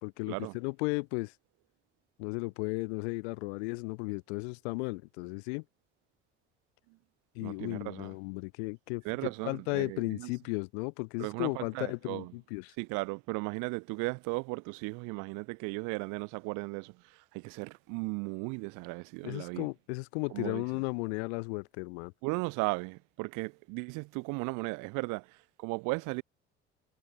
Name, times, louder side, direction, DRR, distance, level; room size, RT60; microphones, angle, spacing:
voice 1, 0.0-1.3 2.2-5.6 7.3-9.0 9.4-12.7 19.2-22.1, left 31 dB, 70° left, 2.5 m, -35 dB
voice 2, 7.4-8.1 9.0-10.3 11.2-12.3 12.8-16.9 17.3-19.7 20.3-20.6 22.2-25.3 25.6-26.2, right 29 dB, 65° right, 1.2 m, -36 dB
hypercardioid pair, 60°, 34 cm